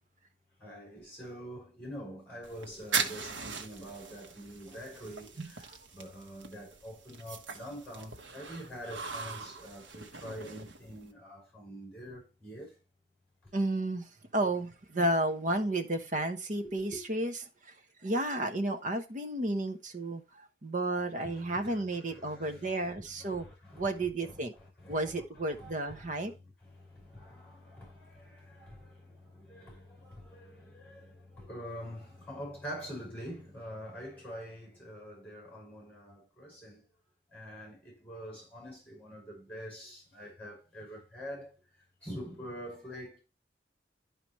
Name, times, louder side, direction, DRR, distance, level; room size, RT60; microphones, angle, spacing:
voice 1, 0.6-5.7 5.9-12.8 13.4-13.5 16.6-17.0 21.2-22.9 23.2-36.8 37.3-43.2, equal, 10° left, 5.5 m, -46 dB
sound 1, 2.4-11.1, right 5 dB, 90° right, 1.2 m, -40 dB
voice 2, 13.5-14.0 14.3-17.3 17.6-17.7 18.0-23.5 23.8-24.5 24.9-26.3, right 1 dB, 45° right, 1.1 m, -32 dB
11.5 x 5.0 x 3.1 m
head